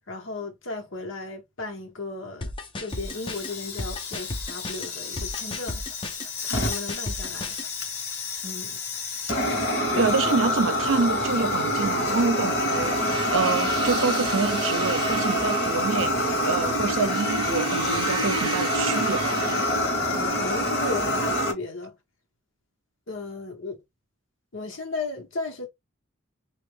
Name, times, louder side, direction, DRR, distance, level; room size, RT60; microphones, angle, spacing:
voice 1, 0.1-2.5 2.8-5.8 6.4-7.6 8.4-8.8 9.9-10.1 20.1-22.0 23.1-23.8 24.5-25.7, left 3 dB, 75° left, 1.2 m, -35 dB
sound 1, 2.4-7.7, left 2 dB, 25° left, 0.5 m, -34 dB
Fire, 2.9-21.5, left 1 dB, 50° left, 1.1 m, -27 dB
voice 2, 10.0-19.4, right 4 dB, 75° right, 0.5 m, -27 dB
sound 2, 12.6-20.3, right 4 dB, 25° right, 0.6 m, -35 dB
3.1 x 2.5 x 3.1 m
head